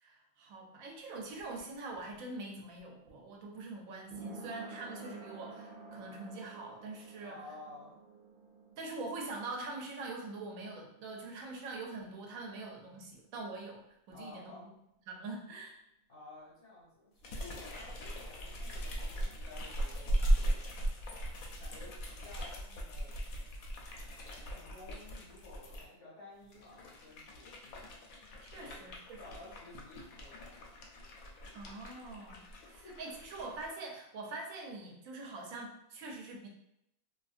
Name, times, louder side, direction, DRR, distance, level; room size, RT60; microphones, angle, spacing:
voice 1, 0.0-7.4 8.8-14.6 15.1-15.8 28.4-29.2 31.5-36.5, right 3 dB, 75° right, 0 dB, 1.0 m, -44 dB
sound 1, 1.0-12.5 12.8-12.9, right 3 dB, 60° right, 0.5 m, -52 dB
voice 2, 7.2-7.9 14.1-14.7 16.1-20.7 21.4-23.2 24.1-28.1 28.6-28.8 29.2-30.7 32.8-33.0, left 2 dB, 65° left, -7 dB, 1.2 m, -53 dB
sound 2, 17.2-25.8 26.4-33.7, right 1 dB, 85° left, 1.0 m, -38 dB
2.6 x 2.6 x 2.3 m, 0.80 s
omnidirectional pair, 1.4 m